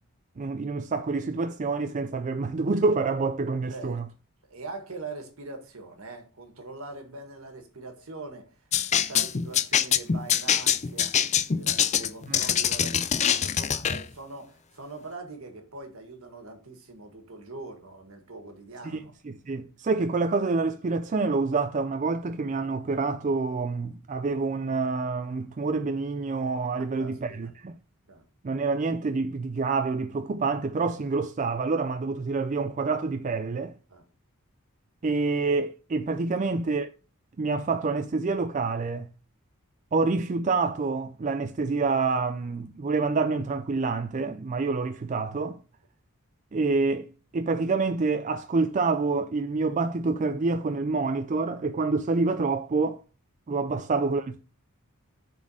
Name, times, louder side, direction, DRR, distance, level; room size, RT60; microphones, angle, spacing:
voice 1, 0.4-4.1 12.3-12.4 18.8-19.0 19.2-27.7 28.4-33.7 35.0-36.9 37.4-39.1 39.9-45.6 46.5-53.0 53.5-54.4, right 4 dB, 35° right, 0.4 m, -27 dB
voice 2, 4.5-8.5 8.8-11.2 11.6-19.1 26.8-27.5 28.1-28.2 33.9-34.0 36.4-36.5 53.7-53.8, right 3 dB, 70° right, 1.8 m, -42 dB
sound 1, 8.7-14.0, left 8 dB, 30° left, 0.4 m, -24 dB
7.0 x 4.3 x 6.3 m
head